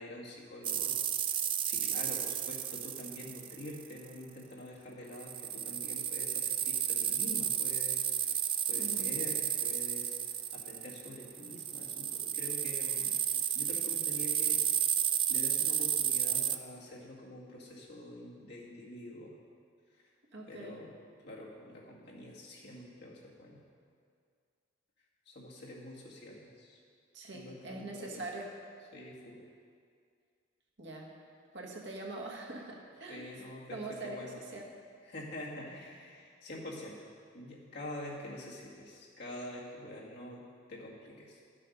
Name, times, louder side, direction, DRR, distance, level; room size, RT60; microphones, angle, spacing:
voice 1, 0.0-8.4 8.7-13.2 13.5-14.6 15.3-19.4 19.9-20.0 20.5-20.9 21.2-23.6 25.3-26.8 27.3-28.2 28.9-29.4 33.1-34.4 35.1-37.1 37.3-40.4 40.7-41.4, left 1 dB, 55° left, -4 dB, 2.0 m, -46 dB
sound 1, 0.6-4.0 5.1-16.6, right 9 dB, 25° right, 0.3 m, -32 dB
voice 2, 8.7-9.1 20.3-20.8 27.1-28.5 30.8-31.1 31.5-33.2 33.7-34.2 34.5-34.6, right 2 dB, 60° right, -1 dB, 1.5 m, -43 dB
12.0 x 7.6 x 5.3 m, 2.2 s
head